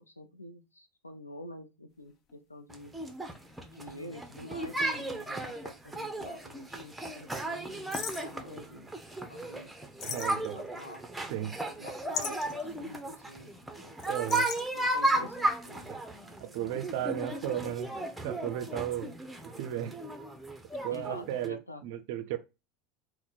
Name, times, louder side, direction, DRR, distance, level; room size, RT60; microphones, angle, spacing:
voice 1, 0.1-2.9 3.7-8.9 9.3-9.7 10.1-11.0 11.7-13.9 14.5-15.9 20.9-21.8, left 1 dB, 85° left, 0.5 m, -48 dB
sound 1, 2.3-2.4 3.3-6.0 6.3-6.4 7.9-8.4 10.0-10.8 12.1-12.6 14.0-14.7, left 6 dB, 40° left, 0.5 m, -39 dB
sound 2, 2.7-21.5, right 1 dB, 5° right, 0.7 m, -35 dB
voice 2, 10.0-10.6 11.3-11.6 14.1-14.5 15.9-16.0 16.4-17.9 18.2-19.1 19.4-20.0 20.8-22.4, right 11 dB, 55° right, 0.5 m, -35 dB
4.2 x 2.2 x 4.0 m
figure-of-eight pair, 75°, 0 cm